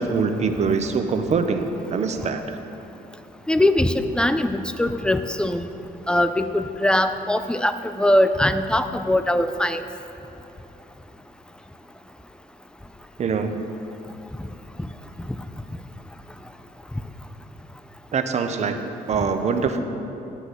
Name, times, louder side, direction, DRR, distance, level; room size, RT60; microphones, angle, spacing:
voice 1, 0.0-2.6 13.2-13.6 18.1-19.8, right 5 dB, 40° right, 7 dB, 0.8 m, -24 dB
voice 2, 3.5-5.7 6.1-9.8, left 1 dB, 5° left, 10 dB, 0.4 m, -21 dB
10.0 x 6.0 x 8.2 m, 2.9 s
cardioid pair, 135°, 17 cm